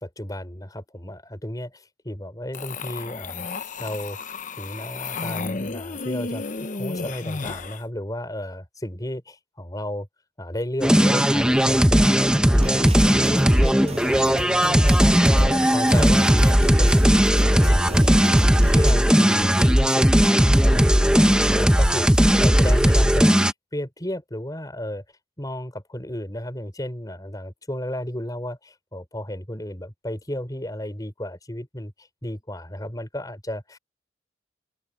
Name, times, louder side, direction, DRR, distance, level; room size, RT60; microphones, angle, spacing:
voice 1, 0.0-3.5 3.8-4.2 4.6-10.1 10.4-15.1 15.3-17.1 17.4-18.3 18.7-25.0 25.4-33.8, left 1 dB, 20° left, 4.8 m, -33 dB
sound 1, 2.5-7.8, left 3 dB, 45° left, 0.9 m, -32 dB
sound 2, 10.8-23.5, equal, 5° right, 0.9 m, -17 dB
sound 3, 12.5-18.9, right 1 dB, 35° right, 7.7 m, -33 dB
open air
head